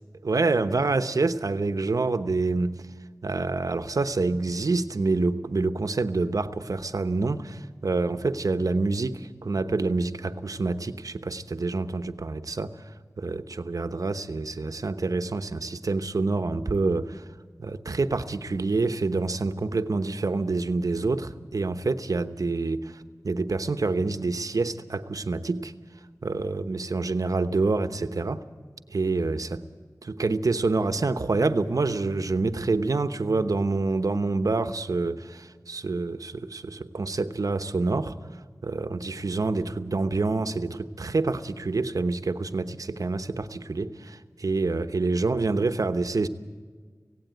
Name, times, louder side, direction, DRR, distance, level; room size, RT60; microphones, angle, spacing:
voice 1, 0.2-2.9 3.2-17.3 17.6-25.7 26.2-28.4 28.9-29.6 30.0-38.1 38.6-46.3, right 3 dB, 70° right, 10 dB, 1.0 m, -27 dB
17.5 x 16.5 x 9.1 m, 1.5 s
wide cardioid pair, 55°, 6 cm